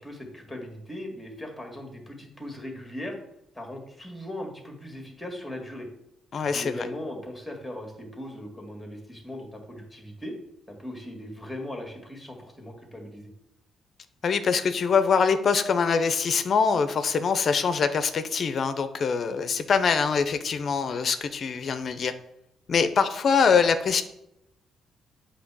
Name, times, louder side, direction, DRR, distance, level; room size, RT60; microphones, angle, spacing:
voice 1, 0.0-3.2 3.5-5.9 6.4-10.3 10.7-13.3, left 1 dB, 5° left, 2 dB, 1.9 m, -39 dB
voice 2, 6.3-6.7 14.2-22.1 22.7-24.0, left 5 dB, 50° left, 10 dB, 0.6 m, -23 dB
7.8 x 3.3 x 6.1 m, 0.82 s
cardioid pair, 90°, 0 cm